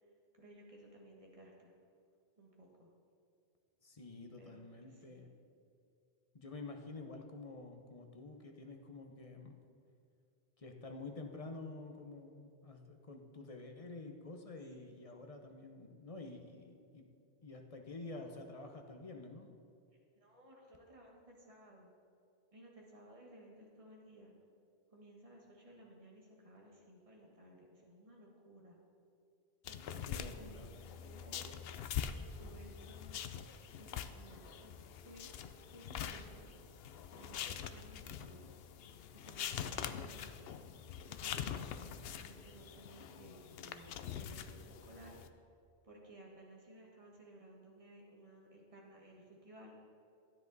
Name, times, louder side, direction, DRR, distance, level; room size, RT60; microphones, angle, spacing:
voice 1, 0.3-1.7 2.4-2.9 4.3-5.2 20.1-21.9 22.5-24.3 24.9-28.8 29.6-31.6 32.2-33.3 33.8-34.7 35.0-36.5 37.1-38.6 39.1-40.4 41.1-45.2 45.8-49.8, right 1 dB, 35° right, -1 dB, 1.7 m, -58 dB
voice 2, 3.8-5.3 6.3-9.6 10.6-17.1 17.4-19.5 30.1-30.7, left 3 dB, 35° left, 4 dB, 0.9 m, -49 dB
sound 1, 29.6-45.3, left 8 dB, 70° left, 0.8 m, -44 dB
13.0 x 9.7 x 4.0 m, 2.5 s
omnidirectional pair, 1.1 m